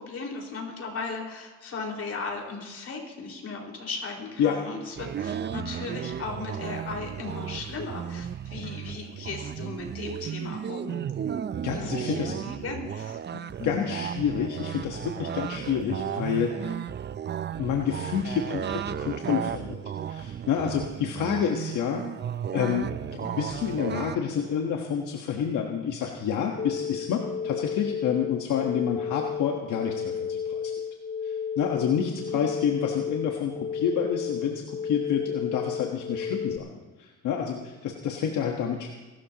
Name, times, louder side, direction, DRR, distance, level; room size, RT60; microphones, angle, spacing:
voice 1, 0.0-11.0 11.7-13.2 13.6-13.8 32.1-32.4, left 4 dB, 55° left, 1 dB, 5.0 m, -37 dB
sound 1, 5.0-24.2, right 8 dB, 35° right, 0.5 m, -34 dB
voice 2, 11.6-12.3 13.3-16.8 17.6-19.8 20.1-22.0 22.5-30.7 31.2-38.9, left 8 dB, 85° left, 1 dB, 1.4 m, -29 dB
sound 2, 26.6-36.6, left 7 dB, 35° left, 0.5 m, -32 dB
24.0 x 13.0 x 3.0 m, 1.2 s
cardioid pair, 90°, 30 cm